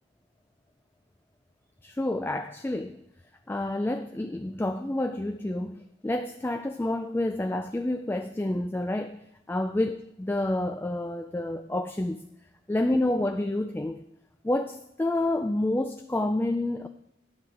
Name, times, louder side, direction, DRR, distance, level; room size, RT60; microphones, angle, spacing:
voice 1, 1.8-3.0 3.5-12.3 12.7-14.0 14.4-16.9, left 1 dB, 10° left, 0.4 m, -29 dB
10.5 x 7.9 x 4.9 m
head